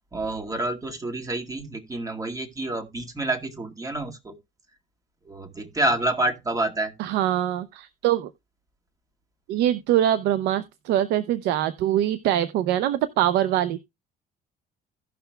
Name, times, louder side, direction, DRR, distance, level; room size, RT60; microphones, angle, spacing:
voice 1, 0.1-4.3 5.3-6.9, right 1 dB, 20° right, 1.9 m, -28 dB
voice 2, 7.0-8.3 9.5-13.8, right 12 dB, 90° right, 0.6 m, -23 dB
16.5 x 6.0 x 2.3 m
cardioid pair, 110°, 17 cm